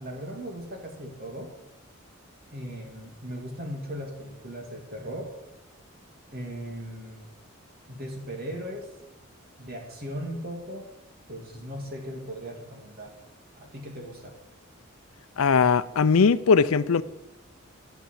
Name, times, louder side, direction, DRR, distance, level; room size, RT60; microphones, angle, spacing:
voice 1, 0.0-1.5 2.5-5.3 6.3-7.3 7.9-8.9 9.6-10.9 11.3-13.2 13.6-14.3, equal, 45° right, 2.1 m, -38 dB
voice 2, 15.4-17.0, left 5 dB, 85° left, 0.5 m, -20 dB
11.5 x 6.9 x 7.8 m
head